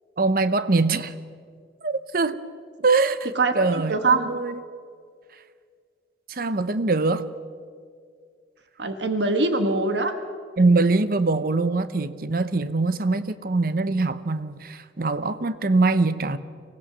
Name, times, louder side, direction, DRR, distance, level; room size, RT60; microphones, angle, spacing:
voice 1, 0.2-1.1 1.8-2.4 2.8-4.6 6.3-7.3 10.6-16.4, right 3 dB, 55° right, 0.8 m, -23 dB
voice 2, 3.3-4.3 8.8-10.1, right 3 dB, 80° right, 1.4 m, -23 dB
25.0 x 17.0 x 6.8 m
head